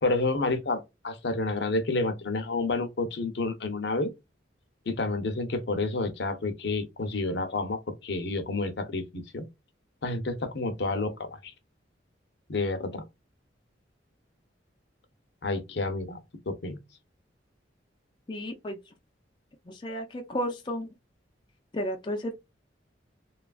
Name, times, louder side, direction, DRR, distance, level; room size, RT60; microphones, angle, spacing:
voice 1, 0.0-4.1 4.9-9.5 10.0-11.5 12.5-13.0 15.4-16.2 16.5-16.8, left 2 dB, 60° left, 0.6 m, -29 dB
voice 2, 18.3-18.8 19.7-20.9 21.7-22.3, equal, 25° left, 0.4 m, -32 dB
2.9 x 2.4 x 2.3 m
head